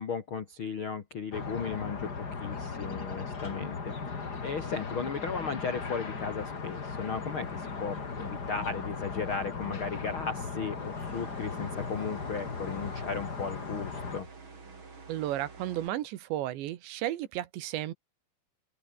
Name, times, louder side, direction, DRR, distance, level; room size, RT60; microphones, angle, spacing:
voice 1, 0.0-14.3, left 5 dB, 85° left, 1.1 m, -36 dB
sound 1, 1.3-14.2, left 4 dB, 30° left, 2.2 m, -37 dB
sound 2, 6.4-15.9, right 4 dB, 30° right, 4.0 m, -51 dB
voice 2, 15.1-17.9, right 13 dB, 75° right, 3.6 m, -33 dB
open air
omnidirectional pair, 5.3 m